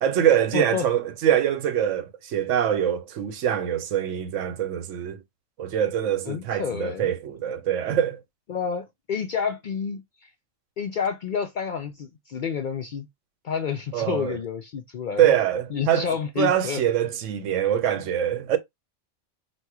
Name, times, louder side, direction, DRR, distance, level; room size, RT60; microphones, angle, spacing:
voice 1, 0.0-5.2 5.6-8.2 13.9-14.4 15.2-16.1 16.4-18.6, right 10 dB, 80° right, 1.0 m, -24 dB
voice 2, 0.5-0.8 6.3-7.1 8.5-10.3 10.8-13.1 13.4-15.3 15.7-16.8, left 7 dB, 60° left, 0.5 m, -29 dB
4.2 x 2.1 x 4.6 m
omnidirectional pair, 1.2 m